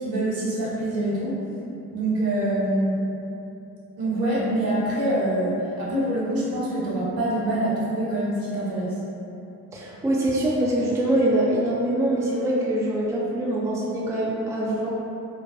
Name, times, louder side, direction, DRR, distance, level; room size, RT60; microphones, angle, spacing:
voice 1, 0.0-1.4 1.9-3.0 4.0-9.0, right 1 dB, 55° right, -7 dB, 1.1 m, -25 dB
voice 2, 9.7-14.9, right 1 dB, 10° right, -6 dB, 0.5 m, -24 dB
3.1 x 2.0 x 2.6 m, 2.8 s
hypercardioid pair, 45°, 42 cm